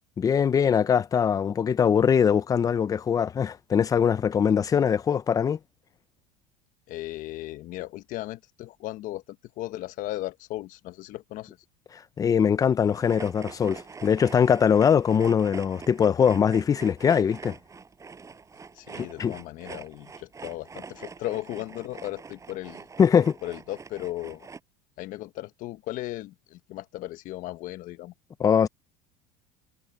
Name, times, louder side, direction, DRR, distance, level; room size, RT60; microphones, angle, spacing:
voice 1, 0.2-5.6 12.2-17.6 19.0-19.3 23.0-23.4 28.4-28.7, left 7 dB, 20° left, 0.6 m, -22 dB
voice 2, 6.9-9.2 9.6-11.6 18.7-22.9 23.4-24.5 25.0-28.1, left 16 dB, 50° left, 1.3 m, -36 dB
sound 1, 12.9-24.6, right 5 dB, 20° right, 6.1 m, -44 dB
supercardioid pair, 130°, 17 cm